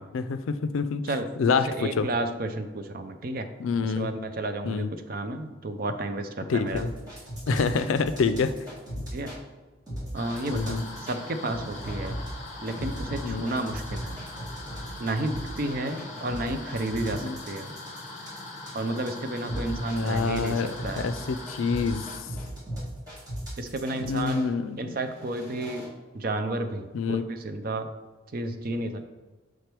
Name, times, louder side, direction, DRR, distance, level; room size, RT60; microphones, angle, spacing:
voice 1, 0.1-1.0 1.4-2.1 3.6-4.1 4.6-4.9 6.5-6.9 7.5-8.5 8.9-9.0 10.5-10.8 13.2-13.5 15.9-16.1 17.2-17.4 19.7-22.1 24.0-25.0 26.9-27.3, left 5 dB, 80° left, 11 dB, 0.4 m, -27 dB
voice 2, 1.1-3.5 3.8-6.8 7.5-7.7 9.1-9.3 10.1-10.8 11.1-12.2 12.6-14.3 15.0-17.8 18.7-21.2 23.6-24.4 24.8-25.9 26.1-27.9 28.3-29.0, right 2 dB, 45° right, 7 dB, 0.5 m, -32 dB
sound 1, 6.7-9.4 9.9-11.2 11.5-24.4 25.0-25.9, equal, 20° right, 1.7 m, -37 dB
sound 2, 10.1-22.2, left 2 dB, 35° left, 1.0 m, -41 dB
6.3 x 3.4 x 4.5 m, 1.3 s
head